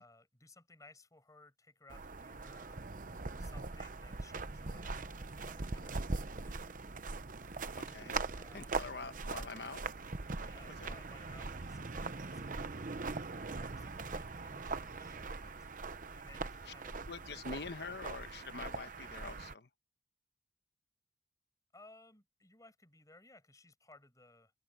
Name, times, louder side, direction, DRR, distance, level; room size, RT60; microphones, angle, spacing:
voice 1, 0.0-2.9 3.4-6.6 7.9-8.9 10.4-15.7 16.1-17.4 21.7-24.5, left 2 dB, 20° left, 7.2 m, -61 dB
sound 1, 1.9-19.5, right 3 dB, 50° right, 0.9 m, -41 dB
voice 2, 7.7-8.2 8.5-9.8 10.7-10.9 17.1-19.7, left 4 dB, 65° left, 1.1 m, -45 dB
open air
head